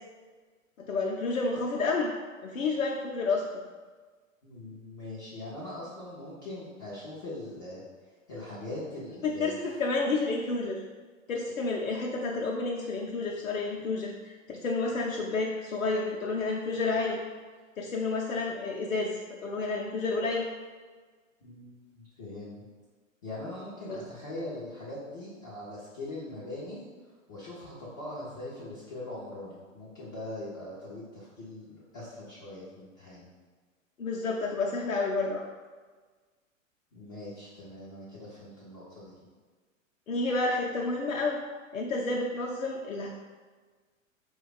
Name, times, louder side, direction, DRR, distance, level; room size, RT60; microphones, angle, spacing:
voice 1, 0.8-2.1 2.4-3.5 9.2-10.8 11.3-17.2 17.8-20.5 23.9-24.0 34.0-35.4 40.1-41.4 41.7-43.1, left 3 dB, 75° left, -2 dB, 0.6 m, -30 dB
voice 2, 4.4-7.8 8.3-9.6 21.4-22.7 23.2-26.8 27.3-33.3 36.9-39.3, left 1 dB, 15° left, -10 dB, 0.3 m, -41 dB
4.5 x 2.3 x 3.8 m, 1.4 s
figure-of-eight pair, 105°, 40 cm